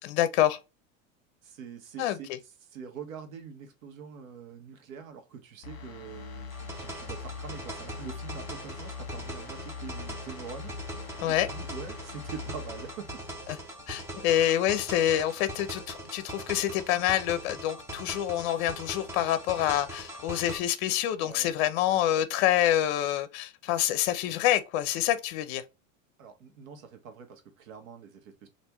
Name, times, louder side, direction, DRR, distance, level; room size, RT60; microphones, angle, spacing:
voice 1, 0.0-0.6 2.0-2.2 11.2-11.5 13.5-13.6 13.9-25.6, left 12 dB, 55° left, 0.6 m, -27 dB
voice 2, 1.4-13.1 21.2-21.5 21.9-22.0 26.2-28.5, right 6 dB, 85° right, 1.1 m, -44 dB
sound 1, 5.6-14.3 14.6-14.8, left 5 dB, 35° left, 1.1 m, -42 dB
sound 2, 6.5-20.6, right 1 dB, 5° right, 0.6 m, -41 dB
3.5 x 2.6 x 3.0 m
supercardioid pair, 140°, 39 cm